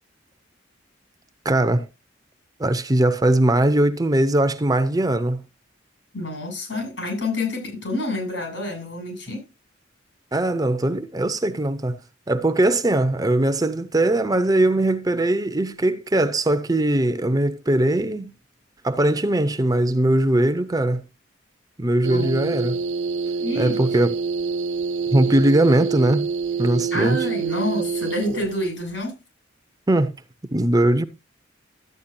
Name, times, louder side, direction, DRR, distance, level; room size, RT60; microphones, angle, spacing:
voice 1, 1.4-1.9 2.6-5.4 10.3-12.0 12.3-18.3 18.8-21.0 21.8-22.8 23.6-24.1 25.1-26.3 26.6-27.2 29.9-30.1 30.5-31.0, right 1 dB, 20° right, 0.7 m, -20 dB
voice 2, 6.1-9.5 22.1-22.6 23.4-23.8 26.9-29.2, left 1 dB, 75° left, 7.2 m, -28 dB
sound 1, 22.0-28.5, right 5 dB, 75° right, 1.1 m, -26 dB
13.0 x 9.3 x 2.7 m
head